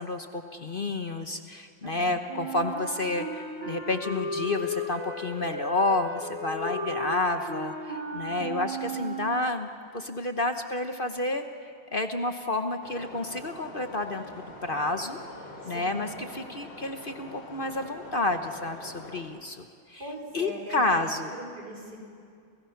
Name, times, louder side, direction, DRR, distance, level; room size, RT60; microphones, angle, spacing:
voice 1, 0.0-15.2 15.7-20.0 20.3-21.3, left 2 dB, 40° left, 7 dB, 0.9 m, -30 dB
voice 2, 1.8-2.2 8.3-8.7 15.6-16.0 20.0-20.9 21.3-22.0, equal, 50° right, 0 dB, 5.4 m, -41 dB
Wind instrument woodwind instrument, 2.3-9.6, right 1 dB, 75° right, 4.9 m, -35 dB
sound 1, 12.8-19.2, left 1 dB, 80° left, 4.3 m, -44 dB
30.0 x 28.5 x 5.9 m, 2.3 s
omnidirectional pair, 2.2 m